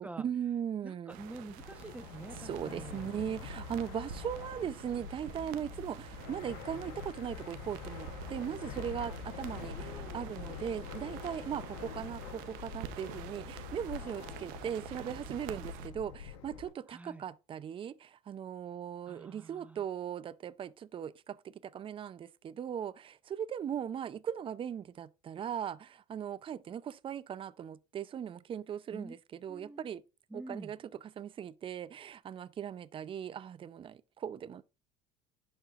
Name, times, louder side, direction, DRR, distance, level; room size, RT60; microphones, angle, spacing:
voice 1, 0.0-1.2 2.4-30.0 30.3-34.6, right 9 dB, 35° right, 0.5 m, -39 dB
voice 2, 0.8-3.1 9.1-9.2 9.7-10.2 16.9-17.2 19.1-19.8 28.9-29.1 29.5-29.8 30.3-30.7, right 2 dB, 10° right, 1.0 m, -47 dB
sound 1, 1.1-15.9, right 12 dB, 75° right, 0.8 m, -48 dB
Fixed-wing aircraft airplane, 1.6-16.7, left 7 dB, 85° left, 1.1 m, -45 dB
11.0 x 4.4 x 2.4 m
supercardioid pair, 85°, 15 cm